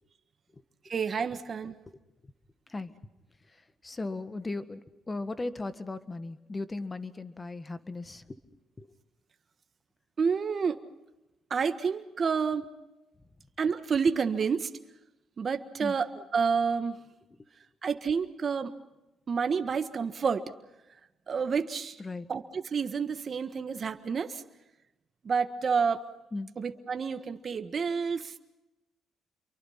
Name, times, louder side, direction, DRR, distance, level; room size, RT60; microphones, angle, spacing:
voice 1, 0.9-1.7 10.2-10.8 11.5-12.6 13.6-14.7 15.4-17.0 17.8-18.7 19.3-20.4 21.3-21.9 22.3-24.4 25.2-26.0 26.6-28.4, right 6 dB, 45° right, 8 dB, 1.5 m, -29 dB
voice 2, 3.8-4.8 5.1-8.2 8.8-8.9 15.8-16.0 22.0-22.3 26.3-26.5, left 2 dB, 25° left, 12 dB, 1.5 m, -36 dB
28.5 x 24.0 x 5.8 m, 0.97 s
cardioid pair, 90°, 0 cm